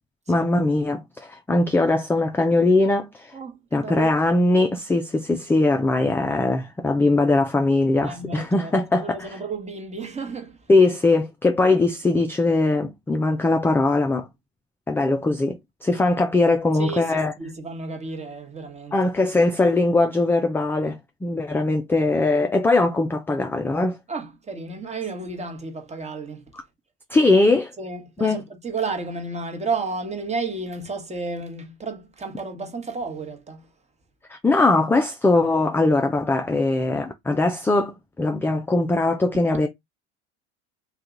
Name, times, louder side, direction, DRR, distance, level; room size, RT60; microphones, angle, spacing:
voice 1, 0.3-3.3 3.7-9.4 10.7-14.3 14.9-17.3 18.9-24.0 27.1-27.7 28.2-28.4 34.3-39.7, left 2 dB, 5° left, 0.3 m, -21 dB
voice 2, 3.3-4.1 8.0-8.7 9.0-10.6 16.4-16.5 16.8-18.9 24.1-26.4 27.8-33.6, right 4 dB, 20° right, 1.1 m, -32 dB
2.7 x 2.3 x 3.7 m
hypercardioid pair, 95°, 35 cm